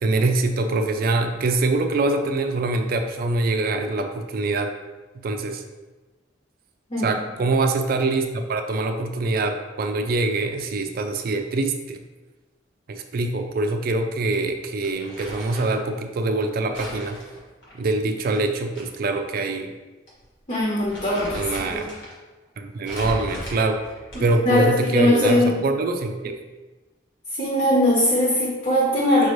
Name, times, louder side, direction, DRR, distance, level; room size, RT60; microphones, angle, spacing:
voice 1, 0.0-4.7 5.2-5.6 7.0-12.0 12.9-17.2 17.8-19.7 21.4-21.9 22.6-23.8 24.2-26.4, right 2 dB, 50° right, 6 dB, 0.4 m, -24 dB
Crumpling crinkling, 14.8-15.8 16.7-18.8 19.2-19.3 20.1-20.2 20.6-22.2 22.8-24.5, equal, 80° left, 1.5 m, -37 dB
voice 2, 20.5-21.9 24.1-25.5 27.3-29.3, left 1 dB, 40° left, -6 dB, 0.8 m, -20 dB
5.3 x 2.5 x 3.1 m, 1.2 s
head